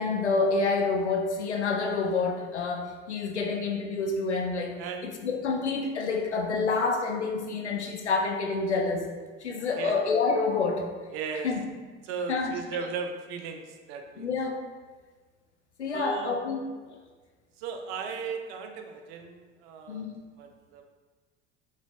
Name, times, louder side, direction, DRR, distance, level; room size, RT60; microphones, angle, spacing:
voice 1, 0.0-9.1 9.4-10.9 11.4-11.7 12.3-12.5 14.2-14.6 15.8-16.6 19.9-20.2, left 4 dB, 85° left, 2 dB, 0.6 m, -28 dB
voice 2, 11.1-11.5 12.0-14.3 15.9-16.3 17.6-20.1 20.4-20.8, right 5 dB, 60° right, 5 dB, 0.7 m, -36 dB
7.2 x 3.2 x 2.2 m, 1.4 s
figure-of-eight pair, 60°, 33 cm